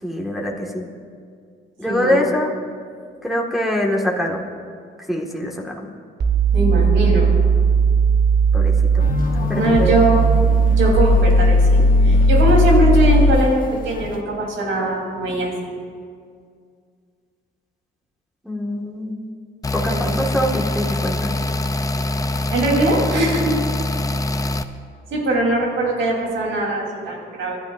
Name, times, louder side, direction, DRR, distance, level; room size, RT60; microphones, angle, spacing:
voice 1, 0.0-0.9 1.8-2.5 3.2-4.5 5.1-5.7 8.5-8.7 9.4-10.0 18.4-19.2 19.7-21.3, equal, ahead, -2 dB, 1.9 m, -24 dB
voice 2, 1.9-2.2 6.5-7.3 9.5-10.2 10.6-15.8 19.9-20.4 22.5-23.5 25.1-27.6, right 1 dB, 75° right, -2 dB, 3.9 m, -21 dB
sound 1, 6.2-13.3, right 2 dB, 55° right, 1.6 m, -16 dB
sound 2, 9.0-14.2, left 4 dB, 45° left, 1.2 m, -32 dB
sound 3, 19.6-24.6, left 1 dB, 15° left, 0.6 m, -23 dB
26.5 x 11.5 x 2.7 m, 2.1 s
cardioid pair, 90°, 20 cm